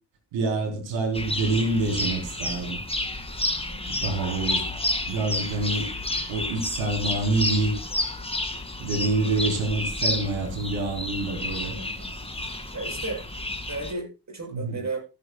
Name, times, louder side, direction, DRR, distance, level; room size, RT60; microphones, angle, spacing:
voice 1, 0.3-2.8 3.9-4.7 5.1-6.0 6.3-7.8 8.8-11.7 14.5-14.8, right 2 dB, 85° right, 4.1 m, -27 dB
sound 1, 1.1-13.9, left 1 dB, 15° left, 2.4 m, -30 dB
voice 2, 11.7-12.1 12.7-13.2 13.7-15.0, right 3 dB, 40° right, 8.0 m, -34 dB
16.5 x 9.7 x 2.4 m
supercardioid pair, 50°, 44 cm